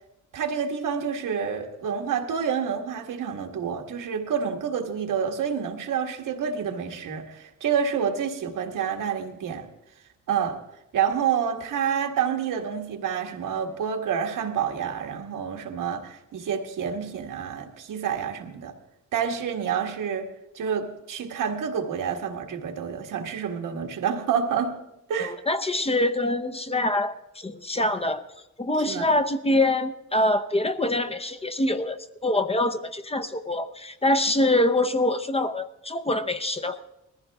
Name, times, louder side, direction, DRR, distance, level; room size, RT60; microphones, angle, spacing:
voice 1, 0.3-9.7 10.3-10.6 10.9-18.7 19.1-20.3 20.5-24.7 25.1-25.3 28.8-29.1, right 7 dB, 85° right, 4 dB, 1.6 m, -28 dB
voice 2, 25.2-28.2 28.6-36.8, left 1 dB, 20° left, 10 dB, 0.7 m, -25 dB
20.5 x 14.5 x 3.5 m, 0.87 s
cardioid pair, 100°, 31 cm